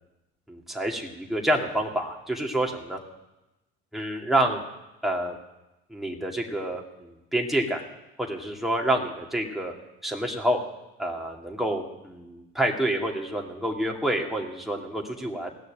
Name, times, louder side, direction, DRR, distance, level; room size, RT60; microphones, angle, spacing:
voice 1, 0.5-3.0 3.9-4.6 5.0-5.4 5.9-7.8 8.2-9.7 10.0-10.6 11.0-15.5, right 1 dB, ahead, 0 dB, 2.3 m, -28 dB
17.0 x 6.5 x 9.0 m, 0.98 s
supercardioid pair, 75°, 30 cm